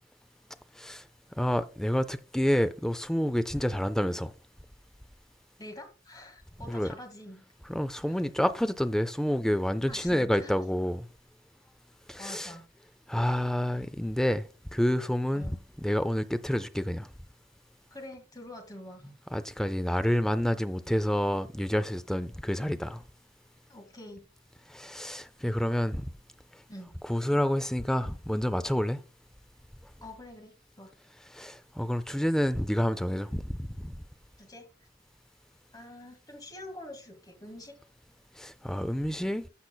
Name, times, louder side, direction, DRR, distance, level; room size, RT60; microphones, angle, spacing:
voice 1, 1.4-4.3 6.7-6.9 7.7-11.1 12.1-12.5 13.1-17.1 19.3-23.0 24.7-26.1 27.1-29.0 31.3-34.0 38.4-39.5, equal, 5° left, 0.3 m, -28 dB
voice 2, 5.6-7.4 8.1-8.3 9.9-10.5 12.2-12.6 15.3-15.6 17.9-19.1 23.7-24.2 26.7-26.9 30.0-30.9 34.4-34.7 35.7-37.8, left 1 dB, 20° left, 1.8 m, -46 dB
14.0 x 5.8 x 2.2 m
head